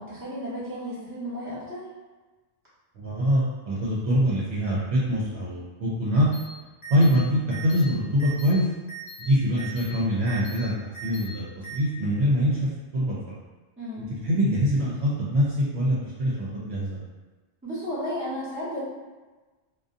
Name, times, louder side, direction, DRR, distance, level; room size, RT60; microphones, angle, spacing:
voice 1, 0.0-1.8 13.8-14.1 17.6-18.8, equal, 10° right, -10 dB, 0.9 m, -33 dB
voice 2, 3.0-6.3 6.9-8.6 9.2-10.7 11.0-11.4 11.7-13.3 14.0-17.0, equal, 65° right, -7 dB, 0.8 m, -24 dB
sound 1, 6.3-6.5 6.8-7.1 7.5-7.8 8.2-8.5 8.9-9.2 9.6-9.9 10.3-10.6 10.9-11.3 11.6-11.8, right 4 dB, 50° left, 0.7 m, -40 dB
2.5 x 2.3 x 2.5 m, 1.2 s
omnidirectional pair, 1.3 m